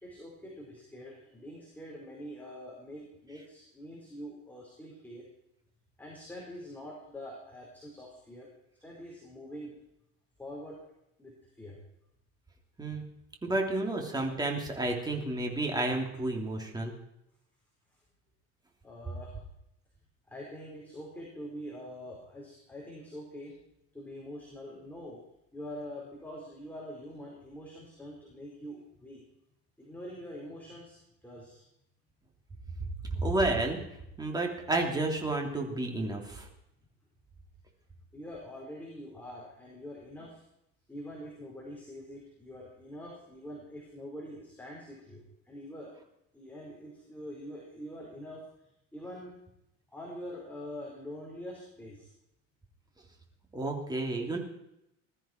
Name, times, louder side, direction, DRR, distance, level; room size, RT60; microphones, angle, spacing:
voice 1, 0.0-5.3 6.0-8.5 8.8-9.7 10.4-10.8 11.2-11.8 18.8-19.3 20.3-23.6 23.9-25.2 25.5-29.2 29.8-31.6 38.1-40.4 40.9-45.9 46.3-48.4 48.9-49.3 49.9-52.1, equal, 5° left, -4 dB, 4.6 m, -45 dB
voice 2, 13.4-16.9 33.1-33.8 34.2-36.5 53.5-54.4, right 2 dB, 15° right, 2 dB, 3.1 m, -31 dB
20.5 x 14.0 x 4.6 m, 0.82 s
cardioid pair, 145°, 30 cm